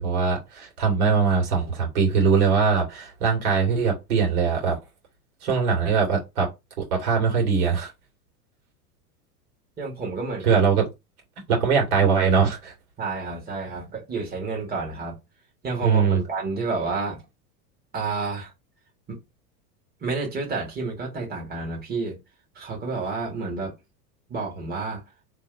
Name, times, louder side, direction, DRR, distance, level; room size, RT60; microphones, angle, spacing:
voice 1, 0.0-4.8 5.4-6.5 6.8-7.9 10.4-10.8 11.5-12.7 15.8-16.2, right 5 dB, 65° right, 2.2 m, -21 dB
voice 2, 9.8-10.6 13.0-15.2 15.6-17.2 17.9-18.5 19.1-19.2 20.0-22.2 22.6-23.7 24.3-25.0, right 4 dB, 20° right, 1.8 m, -30 dB
3.5 x 2.8 x 3.4 m
hypercardioid pair, 100°, 47 cm